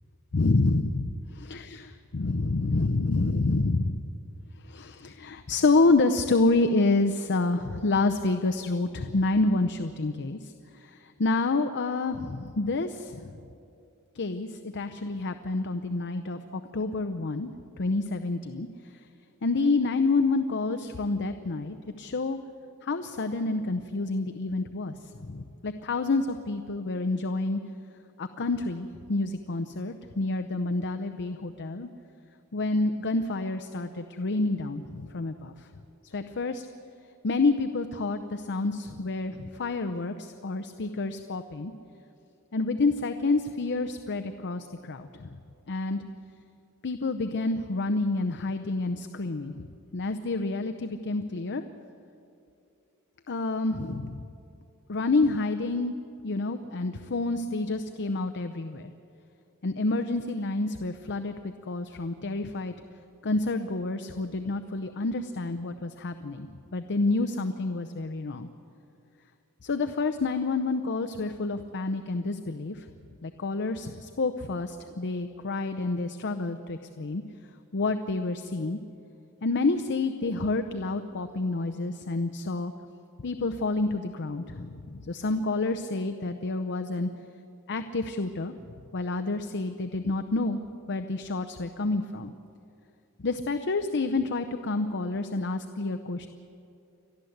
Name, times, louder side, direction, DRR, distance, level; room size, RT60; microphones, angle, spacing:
voice 1, 0.3-4.0 4.6-13.4 14.1-17.5 17.8-18.7 18.9-19.0 19.4-22.4 22.8-27.6 28.2-31.9 32.5-35.7 36.0-36.7 37.2-41.7 42.5-45.3 45.7-46.0 46.8-49.7 49.9-51.6 53.3-54.3 54.9-55.9 56.2-58.9 59.6-61.3 61.7-62.7 63.2-66.5 66.7-68.5 69.6-72.9 73.2-77.2 77.7-78.8 79.4-82.7 83.2-87.1 87.7-88.5 88.9-90.6 90.9-92.3 93.2-96.3, left 3 dB, 55° left, 8 dB, 0.7 m, -28 dB
29.5 x 12.0 x 7.9 m, 2.6 s
head